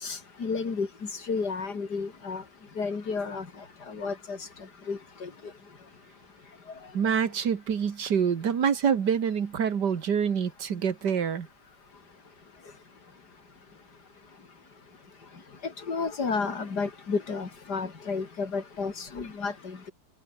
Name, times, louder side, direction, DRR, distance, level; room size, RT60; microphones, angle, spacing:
voice 1, 0.0-0.9 1.3-2.4 2.8-3.5 3.9-4.4 4.9-5.3 15.6-19.9, left 4 dB, 75° left, 3.4 m, -32 dB
voice 2, 6.9-11.5, right 7 dB, 80° right, 2.3 m, -26 dB
omnidirectional pair, 1.8 m